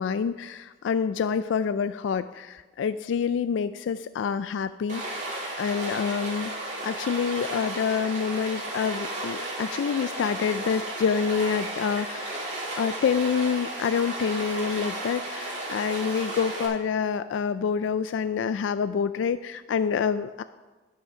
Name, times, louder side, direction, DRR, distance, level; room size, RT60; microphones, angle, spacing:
voice 1, 0.0-5.2 5.6-12.4 12.8-20.4, left 6 dB, 80° left, 13 dB, 0.3 m, -27 dB
Stream, 4.9-16.7, right 2 dB, 40° right, 2.7 m, -34 dB
12.0 x 5.8 x 5.8 m, 1.3 s
head